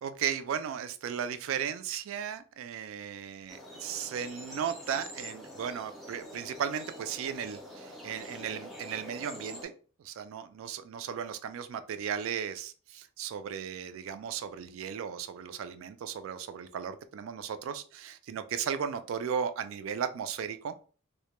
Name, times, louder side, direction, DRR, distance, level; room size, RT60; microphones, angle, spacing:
voice 1, 0.0-9.7 10.0-20.7, right 8 dB, 75° right, 11 dB, 0.3 m, -36 dB
sound 1, 3.5-9.7, equal, ahead, 0.4 m, -46 dB
2.1 x 2.1 x 2.9 m, 0.39 s
head